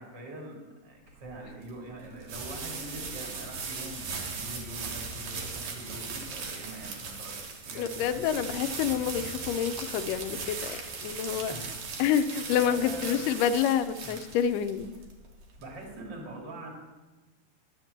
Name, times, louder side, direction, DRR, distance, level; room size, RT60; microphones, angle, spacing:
voice 1, 0.0-8.2 11.4-11.8 12.5-13.3 14.0-14.2 15.6-16.7, right 2 dB, 35° right, 0 dB, 2.6 m, -43 dB
sound 1, 1.1-16.0, right 4 dB, 60° right, 2.4 m, -38 dB
voice 2, 7.8-11.5 12.0-14.9, left 9 dB, 80° left, 10 dB, 2.1 m, -28 dB
11.0 x 6.0 x 7.8 m, 1.2 s
omnidirectional pair, 3.8 m